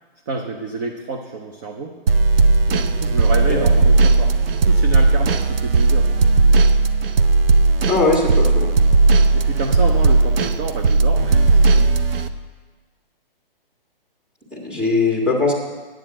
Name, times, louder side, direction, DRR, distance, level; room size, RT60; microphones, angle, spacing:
voice 1, 0.3-2.0 2.7-6.2 9.3-11.9, right 3 dB, 20° right, 3 dB, 0.5 m, -29 dB
sound 1, 2.1-12.3, right 3 dB, 70° right, 0.8 m, -16 dB
voice 2, 7.8-8.7 14.5-15.5, left 3 dB, 5° right, -1 dB, 1.7 m, -19 dB
9.0 x 8.8 x 7.4 m, 1.3 s
hypercardioid pair, 150°, 30 cm